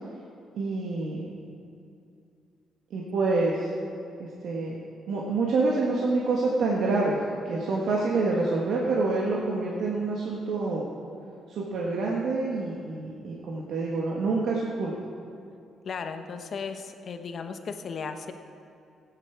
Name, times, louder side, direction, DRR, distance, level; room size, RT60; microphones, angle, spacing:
voice 1, 0.5-1.3 2.9-3.7 4.2-4.7 5.1-10.8 11.5-14.9, right 3 dB, 75° right, -3 dB, 1.5 m, -27 dB
voice 2, 15.8-18.3, left 5 dB, 55° left, 7 dB, 0.9 m, -35 dB
15.5 x 8.9 x 4.7 m, 2.6 s
cardioid pair, 90°, 0 cm